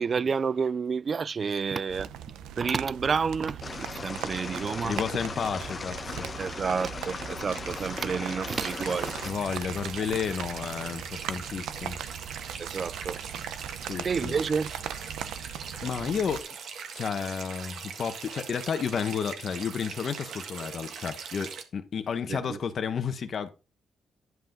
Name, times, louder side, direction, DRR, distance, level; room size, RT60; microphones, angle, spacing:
voice 1, 0.0-2.1 2.6-5.0 6.4-9.1 12.6-13.2 14.0-14.7 22.3-22.6, right 5 dB, 40° right, 0.3 m, -29 dB
sound 1, 1.9-16.4, right 10 dB, 85° right, 0.7 m, -39 dB
sound 2, 3.6-9.3, left 4 dB, 35° left, 1.0 m, -38 dB
voice 2, 4.8-6.3 9.2-12.0 13.8-14.4 15.8-16.5 16.9-23.5, left 6 dB, 50° left, 1.2 m, -32 dB
sound 3, 8.6-21.6, right 6 dB, 70° right, 1.6 m, -40 dB
11.0 x 5.7 x 4.0 m
cardioid pair, 90°, 0 cm